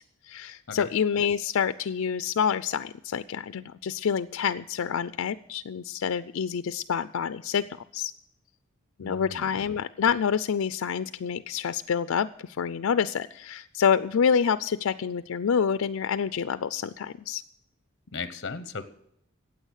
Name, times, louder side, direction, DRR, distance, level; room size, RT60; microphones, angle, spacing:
voice 1, 0.3-7.6 7.9-8.1 9.0-17.4, left 7 dB, 90° left, 12 dB, 0.4 m, -27 dB
voice 2, 9.0-9.7 18.1-18.9, left 4 dB, 55° left, 11 dB, 0.9 m, -36 dB
15.5 x 8.9 x 6.4 m, 0.73 s
head